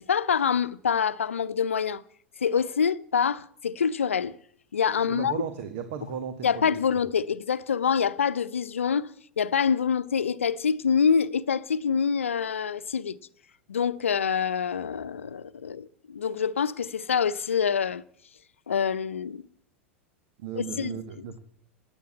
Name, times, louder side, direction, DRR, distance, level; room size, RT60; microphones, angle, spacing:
voice 1, 0.0-2.0 2.4-4.4 4.7-5.4 6.4-9.1 9.4-13.2 13.7-18.0 18.7-19.4 20.5-21.0, left 7 dB, 80° left, 0.7 m, -26 dB
voice 2, 5.1-6.7 20.4-21.4, right 8 dB, 55° right, 1.6 m, -35 dB
17.0 x 9.9 x 8.5 m
figure-of-eight pair, 90°, 7 cm